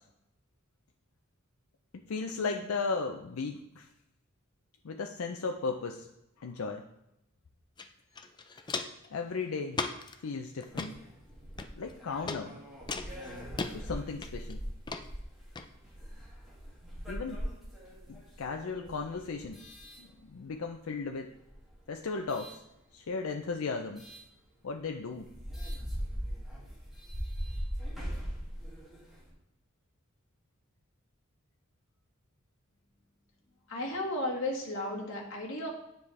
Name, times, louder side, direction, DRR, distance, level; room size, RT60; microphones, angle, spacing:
voice 1, 1.9-3.9 4.8-6.1 6.4-6.8 9.1-9.8 10.2-10.9 11.7-12.6 13.7-14.6 17.1-17.4 18.1-19.6 20.0-21.3 21.9-22.6 22.9-24.0 24.6-25.3, left 4 dB, 90° left, 3 dB, 0.5 m, -36 dB
Walk footsteps, 7.8-7.9 8.1-9.1 9.7-10.1 10.6-10.9 11.6-11.9 12.3-12.4 12.9-13.7 14.2-14.5 14.9-15.0 15.6-15.7, left 4 dB, 20° left, 0.4 m, -36 dB
sound 1, 10.7-20.7 21.3-22.6 24.0-24.2 24.8-24.9 25.1-29.3, equal, ahead, 2.1 m, -41 dB
voice 2, 33.7-35.7, left 1 dB, 65° left, -2 dB, 1.6 m, -34 dB
9.4 x 5.0 x 3.3 m, 0.86 s
head